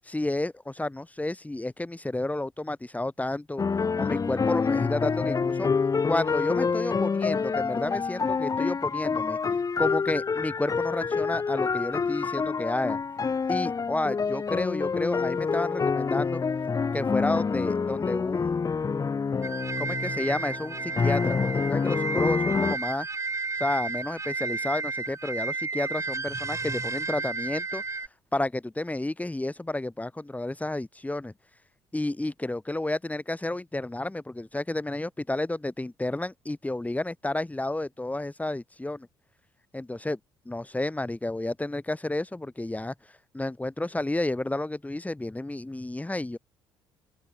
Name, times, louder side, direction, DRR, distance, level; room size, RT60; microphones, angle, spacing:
voice 1, 0.1-3.6 4.0-5.7 6.1-9.4 9.8-13.0 13.5-16.4 16.9-18.6 19.8-23.1 23.6-27.8 28.3-31.3 31.9-39.1 39.7-40.2 40.4-42.9 43.3-46.4, left 2 dB, 10° left, 6.3 m, -31 dB
sound 1, 3.6-22.8, left 5 dB, 30° left, 1.2 m, -27 dB
sound 2, 19.4-28.1, right 3 dB, 25° right, 3.9 m, -32 dB
open air
figure-of-eight pair, 50°, 12 cm